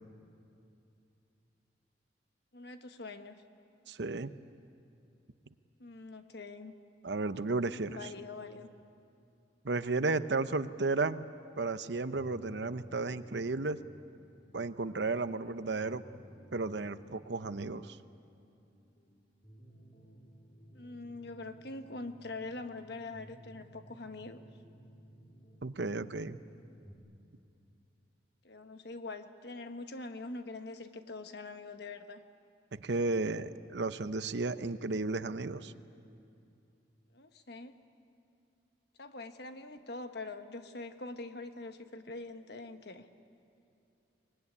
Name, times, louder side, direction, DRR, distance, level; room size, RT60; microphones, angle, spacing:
voice 1, 2.5-3.4 5.8-6.7 7.8-8.7 20.7-24.4 28.4-32.2 37.1-37.7 39.0-43.1, left 3 dB, 60° left, 8 dB, 1.3 m, -44 dB
voice 2, 3.9-4.3 7.0-8.1 9.6-11.3 11.6-13.8 14.5-16.0 16.5-18.0 25.6-26.4 32.8-35.7, right 3 dB, 65° right, 12 dB, 0.8 m, -33 dB
sound 1, 12.1-26.9, equal, 30° left, 3.6 m, -57 dB
24.0 x 21.0 x 9.8 m, 2.7 s
head